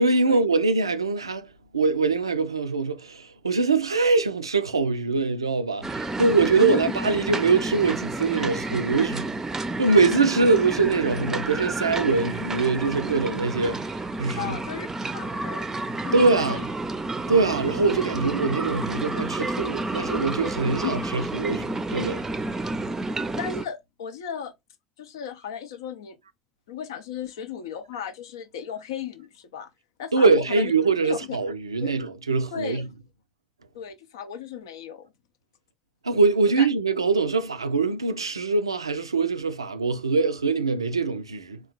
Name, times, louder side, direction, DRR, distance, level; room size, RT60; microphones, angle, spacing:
voice 1, 0.0-1.5 1.7-9.3 9.8-13.8 14.2-14.6 16.1-16.6 17.3-22.2 30.1-32.9 36.0-41.6, right 4 dB, 90° right, 0.3 m, -23 dB
sound 1, 5.8-23.7, right 2 dB, 15° right, 0.4 m, -30 dB
voice 2, 6.6-6.9 14.4-14.9 15.1-15.7 16.0-16.6 20.8-21.0 23.3-24.5 25.0-26.2 26.7-29.7 30.0-30.7 31.0-31.4 31.8-31.9 32.5-32.8 33.7-35.1 36.6-36.7, left 8 dB, 75° left, 0.5 m, -35 dB
3.8 x 2.3 x 3.0 m
figure-of-eight pair, 65°, 3 cm